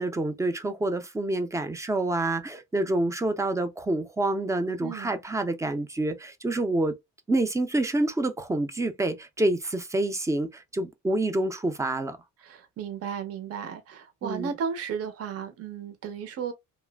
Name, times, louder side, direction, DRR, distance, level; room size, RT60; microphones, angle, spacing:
voice 1, 0.0-6.9 7.3-12.2 14.2-14.5, right 2 dB, 10° right, 0.3 m, -27 dB
voice 2, 4.8-5.1 12.4-16.5, right 7 dB, 50° right, 0.7 m, -34 dB
3.0 x 2.4 x 2.2 m
cardioid pair, 145°, 31 cm